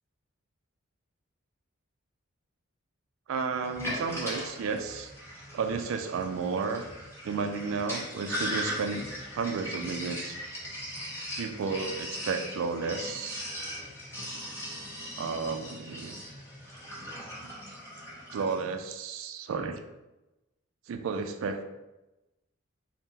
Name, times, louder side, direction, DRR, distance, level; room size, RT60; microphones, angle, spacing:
voice 1, 3.3-5.1 5.5-6.8 7.2-9.1 9.4-10.4 11.4-13.4 15.2-16.2 17.4-17.5 18.3-19.8 20.9-21.6, right 5 dB, 75° right, 7 dB, 0.3 m, -32 dB
Sink (filling or washing), 3.6-18.6, equal, 10° left, 0.6 m, -39 dB
2.7 x 2.0 x 3.5 m, 1.0 s
head